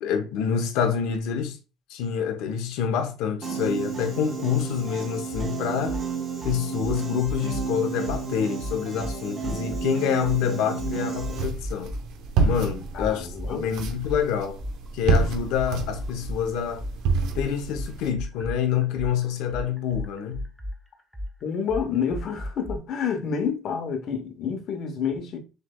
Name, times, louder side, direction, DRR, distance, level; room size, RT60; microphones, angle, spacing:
voice 1, 0.0-1.6 1.9-6.0 6.4-11.9 12.4-14.6 14.9-16.9 17.3-20.4, left 8 dB, 75° left, 0.8 m, -27 dB
Piano, 3.4-11.4, right 6 dB, 30° right, 0.9 m, -32 dB
sound 1, 5.3-5.5 5.9-6.0 6.4-7.7 8.0-8.2 8.6-9.9 10.2-10.4 10.8-12.0 12.4-16.4 16.8-22.8, equal, ahead, 0.6 m, -34 dB
sound 2, 11.1-18.1, right 4 dB, 65° right, 0.7 m, -28 dB
voice 2, 12.9-13.7 21.4-25.4, left 6 dB, 45° left, 0.9 m, -29 dB
6.4 x 3.3 x 2.3 m
cardioid pair, 165°, 0 cm